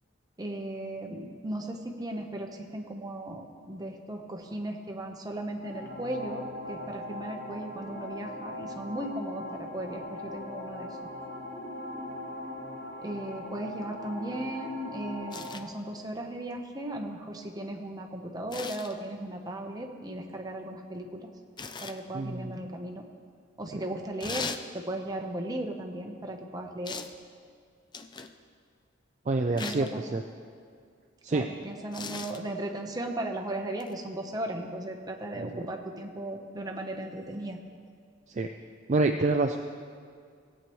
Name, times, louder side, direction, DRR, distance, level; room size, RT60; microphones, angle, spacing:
voice 1, 0.4-10.9 13.0-21.3 21.8-23.0 23.6-24.5 24.7-27.0 29.6-30.0 31.3-37.6, right 1 dB, 20° right, 2 dB, 0.9 m, -36 dB
sound 1, 5.5-15.5, left 1 dB, 55° left, 3.1 m, -40 dB
sound 2, 15.3-15.6 18.5-18.9 21.6-22.0 24.2-24.6 26.9-27.2 27.9-28.3 29.6-29.9 31.9-32.4 33.8-33.9, left 5 dB, 25° left, 0.4 m, -38 dB
voice 2, 22.1-22.7 23.7-23.8 29.3-30.2 31.2-31.5 35.3-35.7 38.3-38.5 38.9-39.6, right 3 dB, 35° right, 4 dB, 0.4 m, -28 dB
17.5 x 8.5 x 3.1 m, 2.2 s
head